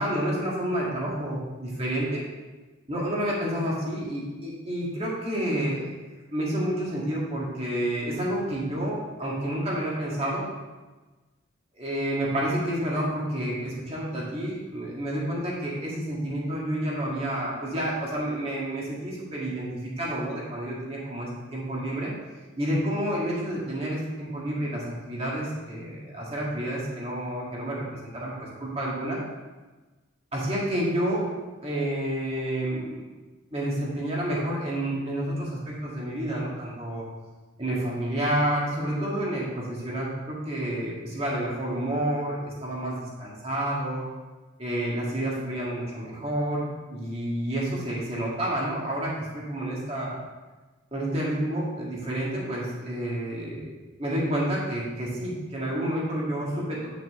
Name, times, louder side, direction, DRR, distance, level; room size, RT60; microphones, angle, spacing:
voice 1, 0.0-2.2 2.9-5.9 6.3-10.5 11.7-22.1 22.6-27.8 28.1-29.2 30.3-31.3 31.6-33.1 33.5-37.0 37.6-44.0 44.6-46.6 46.9-50.1 50.9-53.7 54.0-56.9, right 1 dB, 30° right, -5 dB, 1.9 m, -29 dB
8.8 x 6.0 x 3.7 m, 1.2 s
head